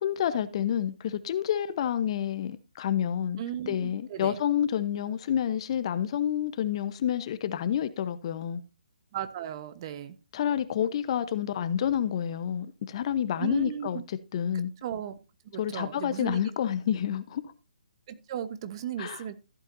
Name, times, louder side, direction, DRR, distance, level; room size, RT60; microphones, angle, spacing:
voice 1, 0.0-3.4 3.7-8.6 10.3-14.0 14.3-14.7 15.5-17.4 19.0-19.2, left 9 dB, 40° left, 0.9 m, -29 dB
voice 2, 3.4-4.4 9.1-10.2 13.4-14.0 14.5-15.2 15.4-16.4 18.1-19.4, right 10 dB, 35° right, 1.0 m, -36 dB
15.0 x 8.2 x 2.6 m
hypercardioid pair, 150°, 5 cm